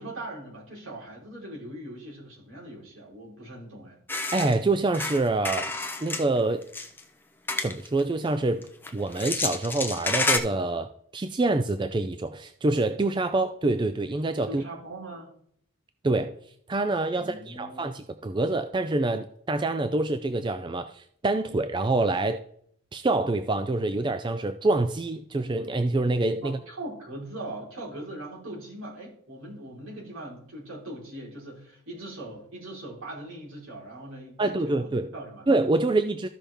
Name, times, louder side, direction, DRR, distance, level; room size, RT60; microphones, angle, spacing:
voice 1, 0.0-4.0 14.5-15.3 17.2-17.9 26.4-35.5, right 1 dB, 70° right, 4.1 m, -40 dB
sound 1, 4.1-4.6 4.9-6.2 6.6-7.0 7.5-8.0 8.6-10.4, left 3 dB, 10° left, 0.6 m, -29 dB
voice 2, 4.3-5.7 6.0-6.6 7.6-8.7 8.9-14.6 16.0-16.4 16.7-22.4 22.9-26.6 34.4-35.1 35.5-36.3, right 2 dB, 20° right, 0.3 m, -26 dB
14.0 x 5.8 x 3.5 m
head